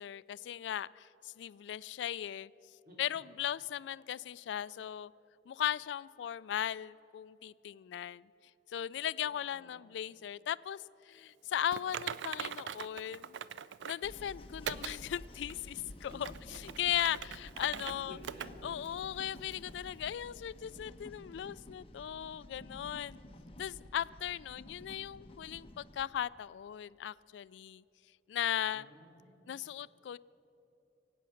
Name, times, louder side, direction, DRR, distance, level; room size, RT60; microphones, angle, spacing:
voice 1, 0.0-2.5 3.0-5.1 5.5-8.3 8.7-13.4 13.8-16.3 16.8-18.2 18.6-23.2 23.6-27.8 28.3-28.9 29.5-30.2, left 10 dB, 75° left, 19 dB, 0.3 m, -37 dB
voice 2, 2.8-3.2 9.2-9.9 16.1-16.2 17.6-19.3 28.6-29.6, equal, 55° right, -1 dB, 3.1 m, -56 dB
Typing, 11.7-14.1 14.7-15.0 15.5-15.6 16.1-17.9 18.2-18.5 18.8-18.9 19.5-19.6, right 8 dB, 85° right, 0.4 m, -41 dB
sound 1, 14.0-26.0, left 1 dB, 35° left, 0.9 m, -52 dB
23.0 x 8.6 x 6.4 m, 2.9 s
head